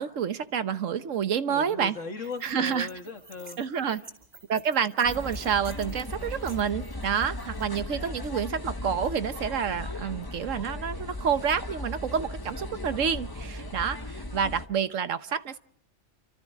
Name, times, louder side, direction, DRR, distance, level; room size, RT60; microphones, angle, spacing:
voice 1, 0.0-2.0 2.4-2.9 3.6-4.0 4.5-15.6, right 7 dB, 75° right, 12 dB, 1.4 m, -28 dB
voice 2, 1.5-3.6, left 4 dB, 70° left, 5 dB, 2.3 m, -38 dB
sound 1, 2.2-7.8, right 3 dB, 50° right, 2.5 m, -51 dB
sound 2, 5.0-14.7, left 1 dB, 20° left, 1.2 m, -37 dB
29.0 x 25.0 x 3.6 m, 0.67 s
omnidirectional pair, 1.3 m